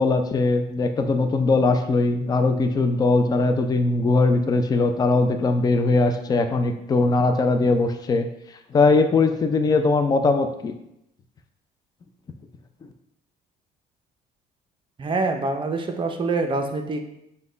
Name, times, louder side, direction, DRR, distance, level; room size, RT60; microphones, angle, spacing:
voice 1, 0.0-10.7, left 3 dB, 25° left, 7 dB, 0.4 m, -20 dB
voice 2, 15.0-17.0, right 3 dB, 30° right, 5 dB, 0.5 m, -25 dB
5.1 x 2.2 x 3.8 m, 0.81 s
cardioid pair, 110°, 17 cm